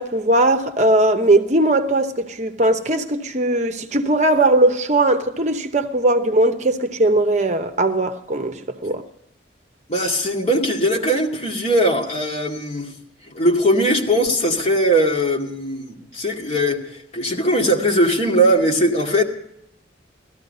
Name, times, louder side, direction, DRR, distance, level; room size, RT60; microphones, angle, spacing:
voice 1, 0.0-9.0, right 2 dB, 35° right, 0.8 m, -19 dB
voice 2, 9.9-12.9 13.3-19.2, equal, 35° left, 2.2 m, -20 dB
17.0 x 13.5 x 5.4 m
head